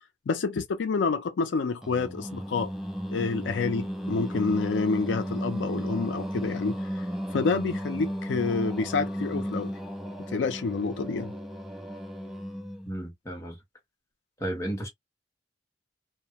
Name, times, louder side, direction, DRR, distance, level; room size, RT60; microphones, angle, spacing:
voice 1, 0.3-2.7 3.1-7.1 7.3-9.7 10.3-11.3, left 4 dB, 85° left, 0.4 m, -28 dB
Singing, 1.8-13.0, equal, ahead, 0.4 m, -34 dB
voice 2, 12.9-13.6 14.4-14.9, right 1 dB, 15° left, 1.0 m, -33 dB
2.2 x 2.1 x 2.7 m
head